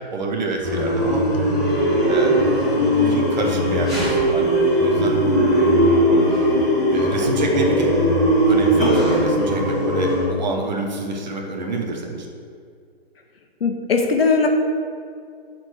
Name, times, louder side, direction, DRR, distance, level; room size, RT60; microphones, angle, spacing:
voice 1, 0.1-1.2 2.1-2.6 3.0-5.2 6.9-8.0 8.5-12.3, right 2 dB, 45° right, 1 dB, 1.2 m, -27 dB
sound 1, 0.6-10.3, equal, ahead, 1.4 m, -19 dB
voice 2, 13.6-14.5, left 4 dB, 65° left, 3 dB, 1.2 m, -19 dB
7.3 x 4.4 x 6.5 m, 2.3 s
hypercardioid pair, 160°, 31 cm